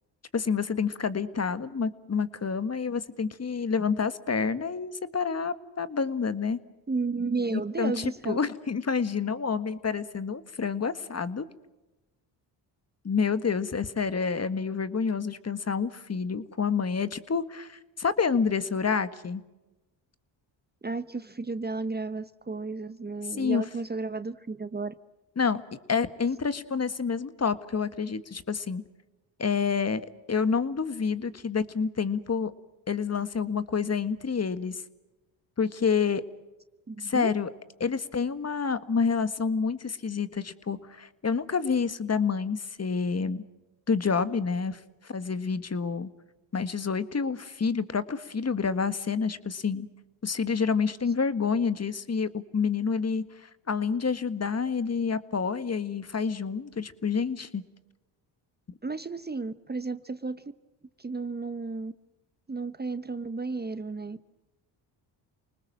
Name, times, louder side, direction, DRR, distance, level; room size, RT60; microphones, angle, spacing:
voice 1, 0.3-6.6 7.5-11.5 13.0-19.4 23.4-23.6 25.4-25.6 25.9-28.8 29.4-30.0 30.3-32.5 32.9-34.8 35.6-36.2 37.0-37.5 37.8-43.4 43.9-46.1 46.5-49.9 50.2-57.6, left 5 dB, 30° left, 13 dB, 1.8 m, -28 dB
voice 2, 6.9-8.4 20.8-24.9 36.9-37.3 58.8-60.4 61.0-61.9 62.5-64.2, right 3 dB, 20° right, 13 dB, 1.1 m, -33 dB
29.0 x 20.0 x 7.6 m, 1.0 s
supercardioid pair, 65°, 48 cm